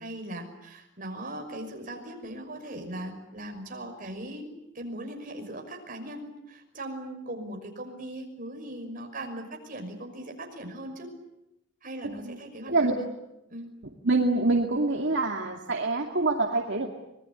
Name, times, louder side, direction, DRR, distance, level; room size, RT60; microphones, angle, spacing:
voice 1, 0.0-4.5 4.7-11.1 11.8-13.1 13.5-13.7, right 1 dB, 45° right, 3 dB, 5.9 m, -39 dB
voice 2, 12.0-12.4 12.7-12.9 14.0-16.9, right 2 dB, 65° right, 2 dB, 2.3 m, -25 dB
25.5 x 21.0 x 9.6 m, 0.90 s
head